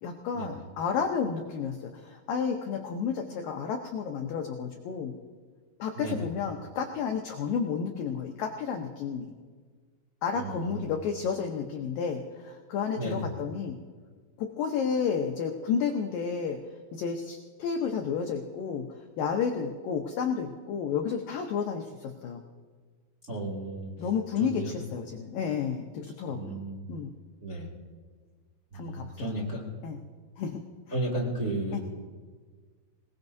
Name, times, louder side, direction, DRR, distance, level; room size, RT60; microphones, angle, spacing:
voice 1, 0.0-5.1 5.8-9.3 10.2-13.8 14.4-16.6 16.9-18.9 19.2-22.4 24.0-26.6 26.9-27.1 28.7-29.4 29.8-30.0 30.4-30.6 31.7-31.8, left 6 dB, 85° left, 3 dB, 1.9 m, -31 dB
voice 2, 5.9-6.3 10.3-10.9 13.0-13.3 23.3-23.9 24.4-24.7 26.3-26.8 27.4-27.7 28.7-29.6 30.9-31.8, right 1 dB, 25° right, -5 dB, 1.5 m, -33 dB
26.0 x 19.0 x 2.7 m, 1.5 s
omnidirectional pair, 5.2 m